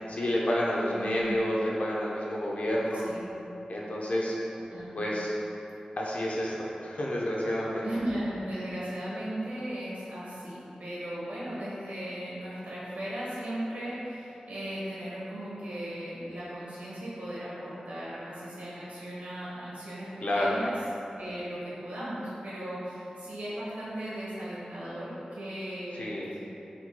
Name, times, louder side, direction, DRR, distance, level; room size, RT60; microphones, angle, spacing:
voice 1, 0.1-3.0 3.7-4.4 4.9-5.3 6.0-6.5 6.8-7.9 20.2-20.5 26.0-26.3, left 1 dB, 65° left, -5 dB, 0.7 m, -29 dB
voice 2, 0.9-1.4 3.0-3.4 4.6-5.0 7.8-20.8 21.1-26.1, right 1 dB, 90° right, -8 dB, 1.2 m, -37 dB
4.4 x 4.2 x 2.2 m, 2.9 s
wide cardioid pair, 70°, 3 cm